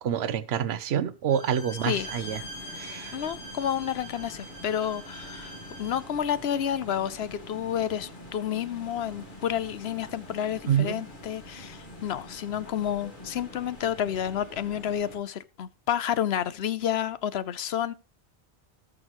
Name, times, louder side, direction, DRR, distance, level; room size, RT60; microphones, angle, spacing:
voice 1, 0.0-2.4 2.7-3.2 10.7-11.0, right 9 dB, 75° right, 1.0 m, -27 dB
Bowed string instrument, 1.3-6.1, equal, 30° left, 3.0 m, -43 dB
sound 1, 1.9-15.2, left 1 dB, 50° left, 2.0 m, -45 dB
voice 2, 3.1-17.9, left 9 dB, 75° left, 1.0 m, -30 dB
19.0 x 6.3 x 3.0 m
omnidirectional pair, 1.1 m